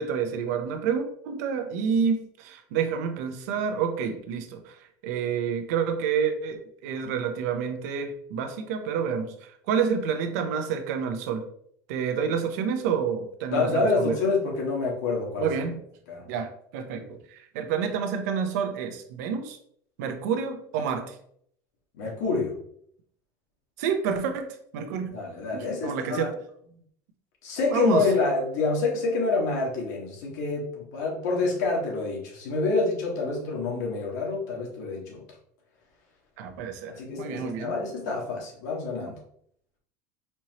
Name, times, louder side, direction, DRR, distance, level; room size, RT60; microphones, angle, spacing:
voice 1, 0.0-4.8 5.0-11.5 11.9-14.2 15.4-15.8 16.3-19.6 20.0-21.2 23.8-25.1 25.5-26.3 27.7-28.0 36.4-36.9 37.2-37.7, right 6 dB, 75° right, 7 dB, 0.7 m, -28 dB
voice 2, 13.5-15.5 16.1-16.3 21.9-22.6 25.1-26.3 27.4-35.2 36.9-39.2, left 3 dB, 85° left, -2 dB, 1.5 m, -27 dB
4.3 x 3.0 x 2.8 m, 0.66 s
cardioid pair, 170°, 9 cm